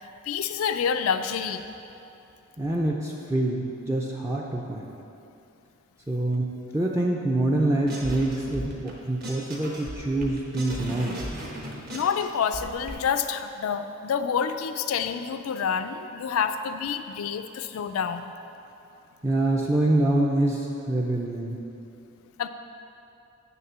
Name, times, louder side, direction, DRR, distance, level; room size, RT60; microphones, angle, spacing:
voice 1, 0.3-1.6 11.9-18.3 22.4-22.5, left 7 dB, 80° left, 9 dB, 0.3 m, -28 dB
voice 2, 2.6-4.9 6.1-11.2 19.2-21.6, right 1 dB, 15° right, -3 dB, 0.4 m, -26 dB
sound 1, 7.9-8.9 9.2-12.9, equal, 45° right, 1.3 m, -36 dB
9.4 x 3.6 x 6.7 m, 2.8 s
head